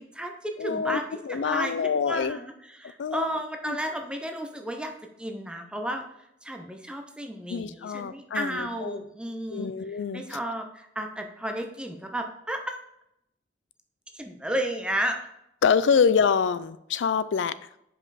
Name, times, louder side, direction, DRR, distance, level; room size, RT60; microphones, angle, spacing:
voice 1, 0.0-4.9 5.2-6.0 6.4-9.7 10.1-12.8 14.1-15.2, right 1 dB, 5° right, 4 dB, 0.5 m, -33 dB
voice 2, 0.6-2.4 3.0-3.8 7.5-9.0 9.5-10.2 15.6-17.5, left 6 dB, 75° left, 15 dB, 0.4 m, -26 dB
5.3 x 5.3 x 4.0 m, 0.78 s
head